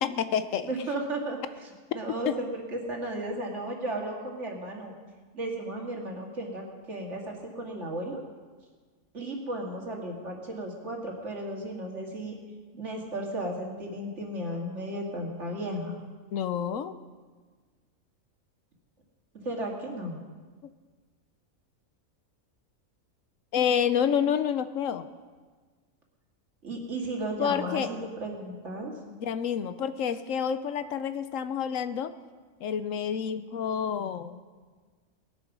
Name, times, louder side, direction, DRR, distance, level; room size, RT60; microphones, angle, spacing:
voice 1, 0.0-0.7 2.3-2.4 16.3-17.0 23.5-25.1 27.4-27.9 29.1-32.1 32.6-34.4, left 8 dB, 70° left, 11 dB, 1.0 m, -28 dB
voice 2, 0.6-1.4 1.9-4.9 5.3-8.2 9.1-12.4 12.7-15.9 19.3-20.2 26.6-28.9, right 1 dB, 55° right, 0 dB, 2.5 m, -34 dB
18.5 x 9.2 x 6.1 m, 1.5 s
omnidirectional pair, 1.4 m